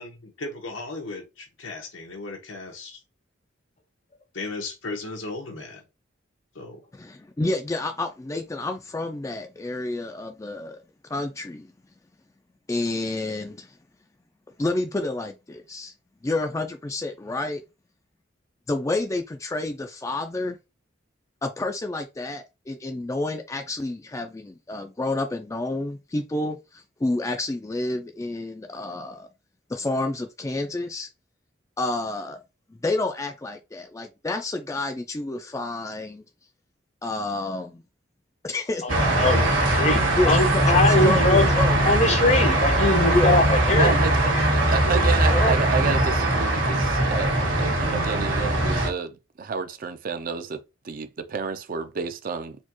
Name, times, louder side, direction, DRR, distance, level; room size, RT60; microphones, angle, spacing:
voice 1, 0.0-3.0 4.3-5.8 6.5-6.8, left 3 dB, 85° left, 1.2 m, -36 dB
voice 2, 6.9-10.8 11.1-11.7 12.7-13.8 14.6-15.9 16.2-17.6 18.7-20.6 21.4-29.3 29.7-31.1 31.8-32.4 32.8-36.2 37.0-37.8 38.4-38.8 40.1-41.8 43.1-43.3, left 2 dB, 15° left, 0.3 m, -29 dB
voice 3, 38.8-41.5 41.8-44.0 44.8-45.0 45.3-45.5, left 2 dB, 35° left, 0.7 m, -22 dB
sound 1, 38.9-48.9, right 1 dB, 80° right, 1.7 m, -21 dB
voice 4, 43.8-44.1 44.5-50.6 50.8-52.6, right 5 dB, 45° right, 0.4 m, -30 dB
4.3 x 2.3 x 2.9 m
head